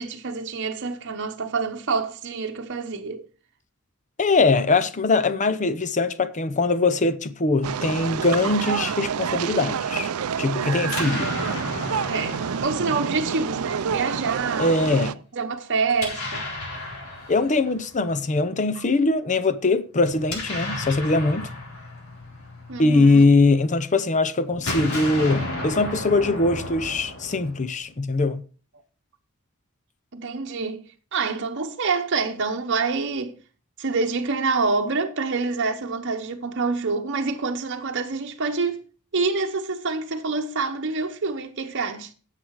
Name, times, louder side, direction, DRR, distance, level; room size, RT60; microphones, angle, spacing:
voice 1, 0.0-3.2 12.1-14.8 15.3-16.4 18.8-18.9 22.7-23.3 30.1-30.8 31.1-33.4 33.8-38.8 39.1-42.1, right 4 dB, 55° right, 0.9 m, -27 dB
voice 2, 4.2-10.1 10.4-11.4 14.6-15.2 17.3-21.5 22.8-28.4, left 3 dB, 35° left, 0.7 m, -21 dB
sound 1, 7.6-15.1, right 7 dB, 75° right, 0.5 m, -28 dB
Explosion, 10.7-13.8 15.9-18.1 20.0-23.4 24.5-27.9, left 2 dB, 65° left, 4.0 m, -33 dB
10.0 x 7.6 x 4.7 m
head